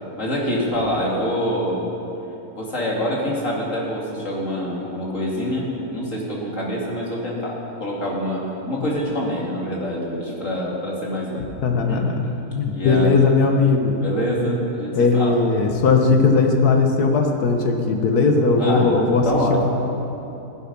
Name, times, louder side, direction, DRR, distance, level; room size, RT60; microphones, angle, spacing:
voice 1, 0.2-1.9 2.5-11.5 11.9-12.1 12.7-13.1 14.0-15.4 18.6-18.9 19.2-19.6, equal, 55° left, -4 dB, 2.7 m, -25 dB
voice 2, 11.6-12.1 12.6-14.0 14.9-19.6, left 4 dB, 85° left, 3 dB, 1.8 m, -18 dB
15.5 x 11.5 x 5.5 m, 2.9 s
omnidirectional pair, 1.6 m